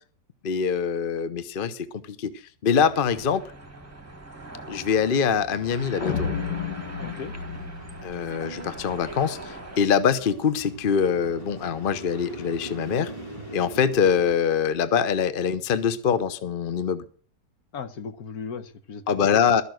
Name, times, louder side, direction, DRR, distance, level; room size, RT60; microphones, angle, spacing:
voice 1, 0.4-2.3 2.6-3.4 4.7-6.3 8.0-13.1 13.5-17.0 19.1-19.6, left 7 dB, 45° left, 0.8 m, -24 dB
sound 1, 2.8-9.8, right 2 dB, 10° right, 1.3 m, -42 dB
sound 2, 6.0-9.1, left 6 dB, 80° left, 1.9 m, -32 dB
sound 3, 6.7-14.3, right 1 dB, 15° left, 2.3 m, -42 dB
voice 2, 7.0-7.4 17.7-19.6, left 6 dB, 65° left, 1.4 m, -37 dB
13.0 x 6.9 x 7.7 m
omnidirectional pair, 1.8 m